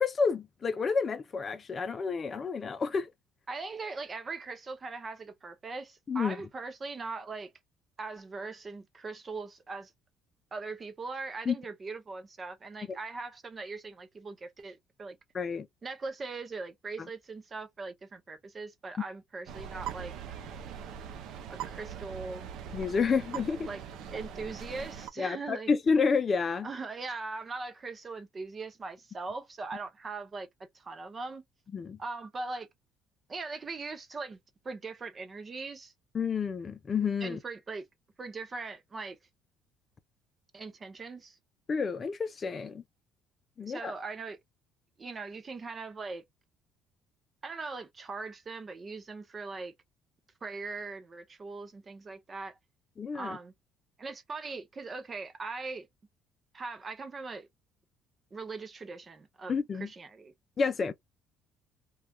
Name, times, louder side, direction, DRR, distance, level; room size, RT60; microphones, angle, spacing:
voice 1, 0.0-3.1 6.1-6.4 11.5-11.6 12.9-13.0 15.3-15.7 22.7-23.7 25.2-26.7 31.7-32.0 36.1-37.4 41.7-42.8 43.6-43.9 53.0-53.4 59.5-59.9 60.6-60.9, left 5 dB, 30° left, 0.5 m, -29 dB
voice 2, 3.5-7.5 8.0-9.9 10.5-15.2 15.8-20.1 21.5-22.5 23.7-23.8 24.1-25.7 26.6-30.5 30.7-31.4 32.0-32.7 33.3-34.4 34.6-35.9 37.2-37.8 38.2-39.2 40.5-41.4 43.6-44.4 45.0-46.2 47.4-49.7 50.4-52.6 53.1-53.5 54.0-55.9 56.5-57.5 58.3-60.3, right 3 dB, 30° right, 0.6 m, -40 dB
sound 1, 19.5-25.1, right 8 dB, 70° right, 0.5 m, -41 dB
3.1 x 2.3 x 2.3 m
cardioid pair, 110°, 0 cm